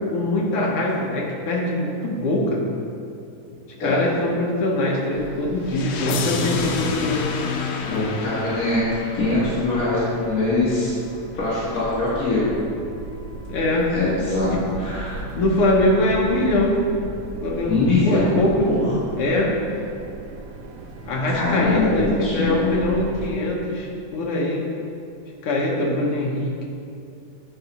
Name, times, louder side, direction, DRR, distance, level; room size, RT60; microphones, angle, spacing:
voice 1, 0.1-2.6 3.8-7.5 13.5-13.9 14.5-14.6 15.3-16.8 17.4-17.7 18.0-18.7 19.2-19.6 21.0-24.7 25.4-26.6, left 1 dB, 65° left, -2 dB, 1.5 m, -22 dB
sound 1, 5.1-23.3, right 3 dB, 80° right, 1.3 m, -37 dB
sound 2, 5.7-10.6, left 4 dB, 85° left, 1.3 m, -29 dB
voice 2, 7.9-8.8 9.1-10.9 11.3-12.5 13.9-14.5 14.8-15.2 17.7-18.9 21.3-22.6, left 2 dB, 40° left, -9 dB, 1.4 m, -22 dB
10.5 x 4.8 x 4.1 m, 2.5 s
omnidirectional pair, 3.5 m